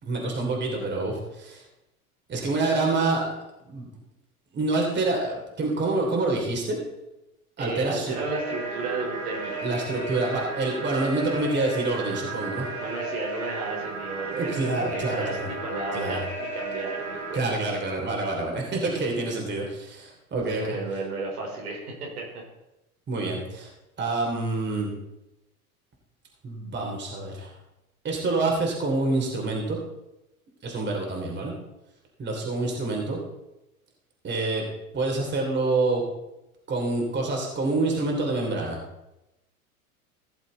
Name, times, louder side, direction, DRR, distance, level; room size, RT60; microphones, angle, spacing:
voice 1, 0.0-1.6 2.3-3.3 3.7-3.9 4.5-6.8 7.6-8.2 9.6-12.7 14.3-15.5 15.9-16.2 17.3-20.7 23.1-23.7 24.0-24.9 26.4-27.5 28.0-29.8 30.6-31.5 32.2-33.2 34.2-34.6 34.9-36.0 36.7-38.8, right 2 dB, 25° right, 0 dB, 3.0 m, -27 dB
voice 2, 7.6-9.6 12.7-17.6 20.5-22.4, right 3 dB, 80° right, -1 dB, 3.9 m, -33 dB
sound 1, 8.1-17.4, right 3 dB, 60° right, 4.2 m, -34 dB
16.0 x 7.3 x 3.9 m, 0.93 s
hypercardioid pair, 100°, 44 cm